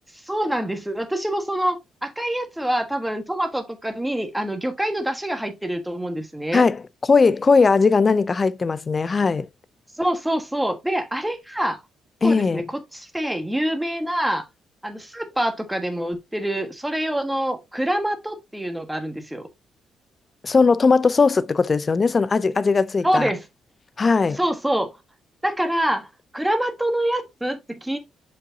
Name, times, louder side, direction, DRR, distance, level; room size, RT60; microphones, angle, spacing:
voice 1, 0.1-6.6 10.0-11.8 12.2-14.4 14.8-19.5 23.0-23.4 24.3-24.9 25.4-26.1 26.3-28.0, right 1 dB, 5° right, 1.4 m, -25 dB
voice 2, 7.1-9.5 12.2-12.6 20.4-23.3 24.0-24.4, left 4 dB, 35° left, 0.4 m, -18 dB
6.6 x 5.4 x 2.7 m
cardioid pair, 90°, 0 cm